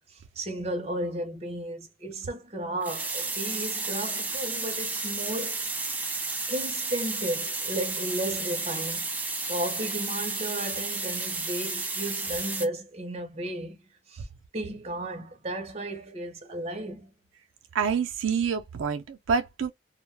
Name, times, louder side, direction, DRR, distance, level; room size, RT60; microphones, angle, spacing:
voice 1, 0.1-5.9 6.5-9.1 9.5-13.8 14.1-14.3 14.5-17.1, right 1 dB, 30° right, 0.7 m, -34 dB
sound 1, 2.8-12.7, right 3 dB, 10° right, 0.3 m, -32 dB
voice 2, 17.7-19.7, right 6 dB, 75° right, 0.4 m, -27 dB
2.2 x 2.1 x 3.2 m
head